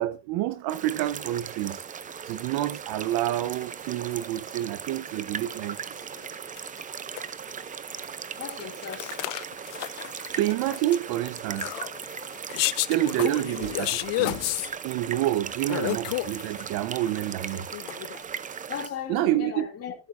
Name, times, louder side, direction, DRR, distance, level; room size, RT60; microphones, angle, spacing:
voice 1, 0.0-1.8 2.3-6.0 10.1-11.7 12.9-14.4 14.8-17.7 19.1-19.7, right 14 dB, 65° right, 1.0 m, -28 dB
sound 1, 0.7-18.9, right 7 dB, 20° right, 0.7 m, -38 dB
sound 2, 3.6-3.7 4.1-4.4 5.2-5.3 5.8-5.9 6.1-6.3 6.6-7.2 7.5-7.7 8.0-8.1 8.5-14.7 15.7-16.7 17.0-18.2, left 19 dB, 55° left, 0.7 m, -32 dB
voice 2, 8.4-9.3 18.7-19.9, left 8 dB, 40° left, 2.8 m, -37 dB
13.0 x 11.5 x 2.6 m
cardioid pair, 135°, 39 cm